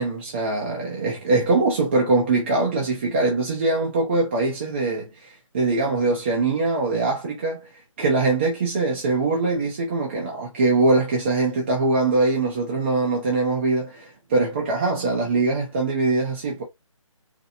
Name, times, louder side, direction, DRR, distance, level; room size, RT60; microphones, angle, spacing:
voice 1, 0.0-7.7 8.0-16.6, right 3 dB, 20° right, 0.5 m, -22 dB
4.2 x 2.1 x 2.6 m
figure-of-eight pair, 160°, 17 cm